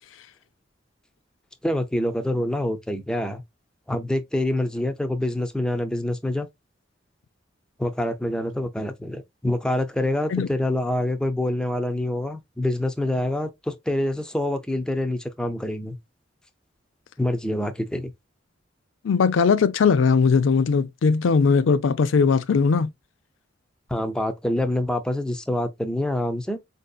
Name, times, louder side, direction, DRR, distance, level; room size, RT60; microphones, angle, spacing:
voice 1, 1.6-3.4 3.9-6.5 7.8-16.0 17.2-18.1 23.9-26.6, left 1 dB, 5° left, 0.4 m, -26 dB
voice 2, 19.0-22.9, left 5 dB, 85° left, 0.4 m, -19 dB
4.5 x 2.7 x 2.3 m
head